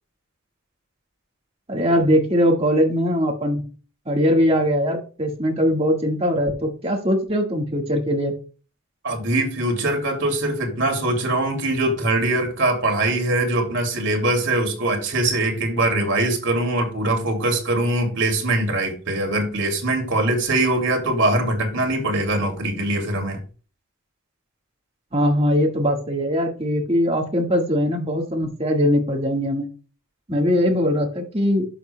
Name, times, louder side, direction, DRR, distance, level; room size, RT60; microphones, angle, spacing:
voice 1, 1.7-3.6 4.0-8.3 25.1-29.7 30.3-31.7, equal, 25° right, 1.6 m, -21 dB
voice 2, 9.0-23.4, right 2 dB, 55° right, 2.5 m, -22 dB
11.0 x 6.9 x 2.2 m
head